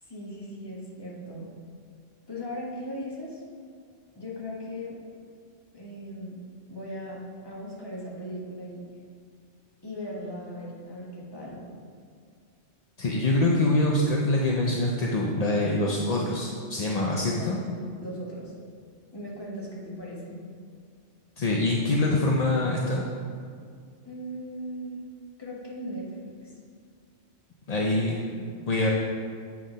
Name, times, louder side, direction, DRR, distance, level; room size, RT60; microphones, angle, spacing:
voice 1, 0.0-1.5 2.3-3.4 4.1-5.0 5.7-8.8 9.8-11.6 13.2-13.3 17.4-18.5 19.1-20.4 24.0-25.0 25.4-26.5, equal, 20° left, -5 dB, 1.4 m, -38 dB
voice 2, 13.0-17.6 21.4-23.0 27.7-28.9, left 2 dB, 45° left, -2 dB, 0.6 m, -25 dB
8.6 x 3.8 x 5.1 m, 2.1 s
omnidirectional pair, 1.2 m